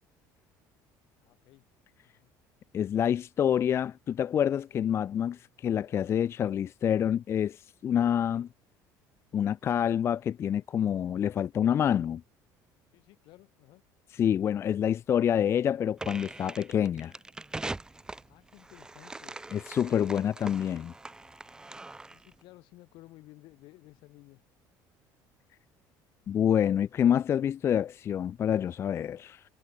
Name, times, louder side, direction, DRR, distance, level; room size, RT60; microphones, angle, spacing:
voice 1, 1.2-1.6 2.0-2.3 12.9-13.8 18.2-19.4 22.1-24.4, left 19 dB, 70° left, 2.6 m, -55 dB
voice 2, 2.7-8.5 9.3-12.2 14.1-17.1 19.5-20.9 26.3-29.4, left 9 dB, 30° left, 0.3 m, -27 dB
sound 1, 16.0-22.3, right 2 dB, 10° right, 0.6 m, -42 dB
cardioid pair, 135°, 8 cm